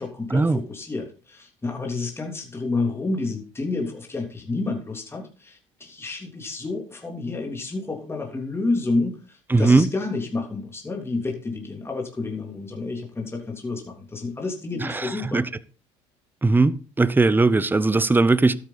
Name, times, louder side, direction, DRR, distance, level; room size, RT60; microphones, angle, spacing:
voice 1, 0.0-15.4, left 3 dB, 15° left, 3.2 m, -29 dB
voice 2, 9.5-9.9 14.9-15.4 16.4-18.6, right 3 dB, 15° right, 0.9 m, -19 dB
12.5 x 9.3 x 4.1 m
supercardioid pair, 75°, 14 cm